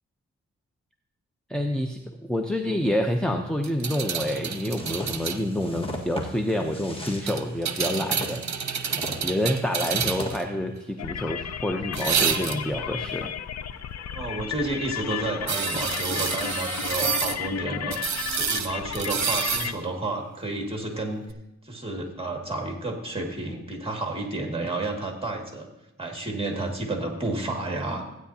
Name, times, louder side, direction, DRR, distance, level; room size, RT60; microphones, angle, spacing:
voice 1, 1.5-8.4 9.2-13.4, left 1 dB, 5° left, 4 dB, 0.7 m, -28 dB
sound 1, 3.6-5.4 7.3-10.4 11.9-12.8 15.5-17.4 17.9-19.7 21.3-21.4, right 7 dB, 65° right, 0.8 m, -29 dB
sound 2, 4.7-10.4, equal, 20° left, 1.7 m, -37 dB
voice 2, 9.7-10.0 14.1-18.0 18.3-21.3 21.6-25.7 26.0-28.1, right 2 dB, 20° right, 1 dB, 2.1 m, -31 dB
sound 3, 11.0-19.7, left 9 dB, 60° left, 0.5 m, -33 dB
15.5 x 9.3 x 2.8 m, 0.91 s
wide cardioid pair, 95°, 30 cm